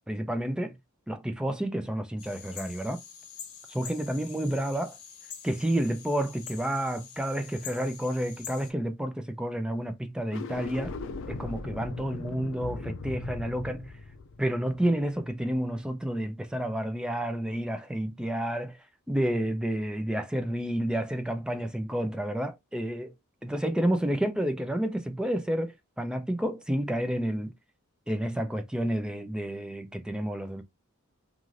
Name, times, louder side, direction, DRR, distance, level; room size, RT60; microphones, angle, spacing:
voice 1, 0.1-0.7 1.1-3.0 3.7-5.0 5.4-10.9 11.3-13.9 14.4-18.8 19.1-23.1 23.4-27.5 28.1-30.6, right 1 dB, 5° right, 0.3 m, -30 dB
sound 1, 2.2-8.7, left 7 dB, 80° left, 1.0 m, -45 dB
sound 2, 10.2-15.5, left 3 dB, 60° left, 0.4 m, -39 dB
2.4 x 2.4 x 3.0 m
head